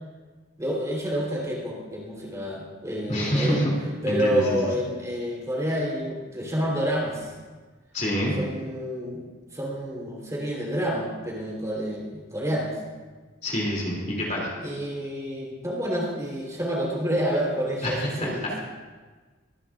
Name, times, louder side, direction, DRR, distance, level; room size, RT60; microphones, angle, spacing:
voice 1, 0.6-3.6 4.0-7.3 8.4-12.7 14.6-18.5, equal, 15° right, -3 dB, 3.5 m, -28 dB
voice 2, 3.1-3.7 4.1-4.6 7.9-8.3 13.4-14.5 17.8-18.5, equal, 40° left, -3 dB, 2.9 m, -26 dB
23.0 x 11.5 x 2.5 m, 1.4 s
head